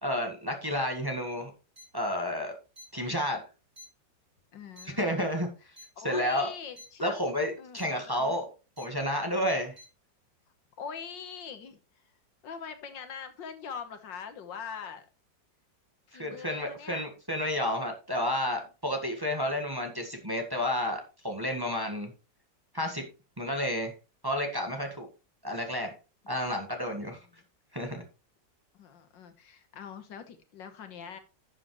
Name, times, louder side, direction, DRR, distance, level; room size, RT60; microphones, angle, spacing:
voice 1, 0.0-1.5 1.9-2.6 2.9-3.4 4.8-5.5 6.0-6.5 7.0-8.4 8.8-9.8 16.1-22.1 22.7-23.0 23.4-23.9 24.2-25.1 25.4-25.9 26.3-27.2 27.7-28.0, left 1 dB, 15° right, 3 dB, 1.6 m, -31 dB
sound 1, 1.8-1.9 2.8-2.9 3.8-3.9 4.8-4.9 5.8-5.9 6.8-6.9 7.8-7.9 8.8-8.9 9.8-9.9, left 1 dB, 30° right, 5.5 m, -48 dB
voice 2, 4.5-5.3 6.0-7.2 7.6-8.4 10.8-11.8 12.4-15.1 16.1-17.1 27.0-27.4 28.7-31.2, left 6 dB, 80° left, 9 dB, 2.0 m, -42 dB
11.0 x 7.6 x 3.1 m, 0.32 s
omnidirectional pair, 1.9 m